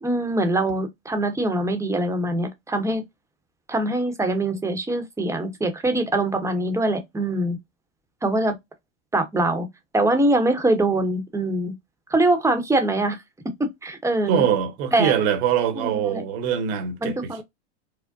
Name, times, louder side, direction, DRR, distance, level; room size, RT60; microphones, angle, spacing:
voice 1, 0.0-3.0 3.7-7.6 8.2-8.5 9.1-9.7 9.9-11.7 12.1-13.2 13.8-14.4 14.9-15.1 15.8-16.2 17.0-17.4, right 2 dB, 10° right, 0.9 m, -23 dB
voice 2, 14.3-17.4, right 8 dB, 60° right, 1.2 m, -23 dB
5.0 x 2.1 x 2.6 m
supercardioid pair, 120°, 33 cm